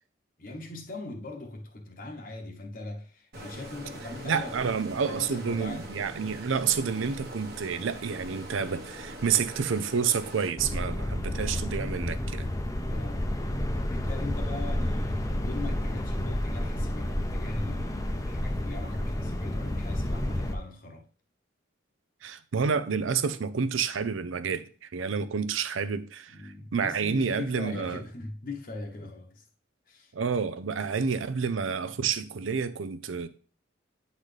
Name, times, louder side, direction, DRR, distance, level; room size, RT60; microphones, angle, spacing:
voice 1, 0.4-4.5 4.8-5.9 12.9-13.5 13.9-21.1 26.3-29.4 29.9-30.1, left 2 dB, 45° left, 0.9 m, -40 dB
Stream, 3.3-10.5, right 1 dB, 50° right, 1.2 m, -42 dB
voice 2, 4.2-12.5 22.2-28.0 30.1-33.3, right 6 dB, 90° right, 0.5 m, -29 dB
sound 1, 10.6-20.5, left 1 dB, 15° left, 0.5 m, -30 dB
8.8 x 4.0 x 3.3 m
head